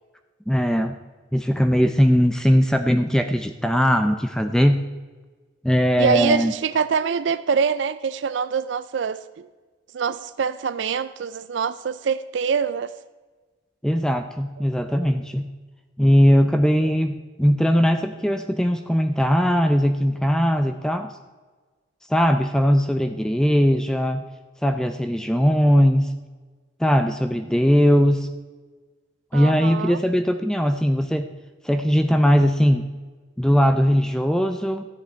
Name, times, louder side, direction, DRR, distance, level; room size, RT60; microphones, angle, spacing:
voice 1, 0.5-0.9 1.3-4.8 5.6-6.5 13.8-15.5 16.0-21.1 22.1-24.3 24.6-26.1 26.8-28.3 29.3-31.3 31.6-32.8 33.4-34.9, equal, 5° left, 7 dB, 0.5 m, -19 dB
voice 2, 6.0-9.5 9.9-12.9 16.8-16.9 29.3-30.0, right 6 dB, 70° right, 14 dB, 0.4 m, -24 dB
13.0 x 9.7 x 4.5 m, 1.3 s
head